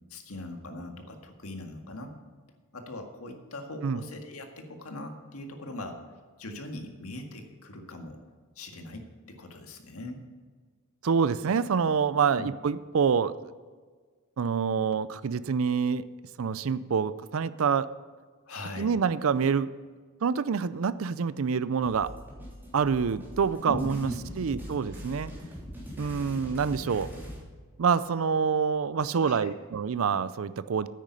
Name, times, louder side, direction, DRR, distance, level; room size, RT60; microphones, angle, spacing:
voice 1, 0.1-2.1 2.7-6.0 6.4-8.2 8.6-10.2 12.3-12.5 18.5-18.9 23.7-24.2 29.2-29.5, left 1 dB, 85° left, 4 dB, 1.8 m, -40 dB
voice 2, 11.0-13.4 14.4-16.0 16.4-17.9 18.8-19.7 20.2-22.1 22.7-24.1 24.4-25.3 26.0-27.1 27.8-30.9, right 6 dB, 65° right, 15 dB, 0.4 m, -26 dB
sound 1, 21.8-27.4, equal, 10° right, 3.3 m, -42 dB
10.0 x 9.1 x 5.5 m, 1.5 s
head